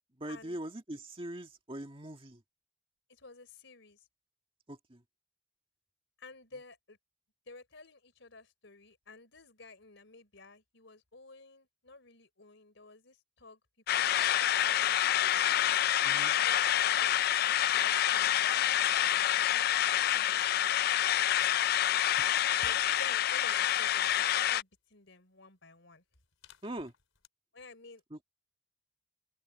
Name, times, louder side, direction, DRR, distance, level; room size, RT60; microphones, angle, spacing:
voice 1, 0.2-2.4 4.7-5.0 16.0-16.3 22.2-22.3 26.6-26.9 28.1-28.3, right 1 dB, 25° right, 1.8 m, -42 dB
voice 2, 3.1-4.0 6.2-7.0 7.5-13.6 13.9-15.3 16.3-17.2 17.8-20.7 21.0-21.6 22.6-26.0 27.5-28.0, left 3 dB, 65° left, 4.0 m, -53 dB
sound 1, 13.9-24.6, left 11 dB, 50° left, 0.3 m, -27 dB
sound 2, 20.3-20.6 21.0-24.2 26.1-27.3, left 9 dB, 85° left, 4.7 m, -61 dB
open air
head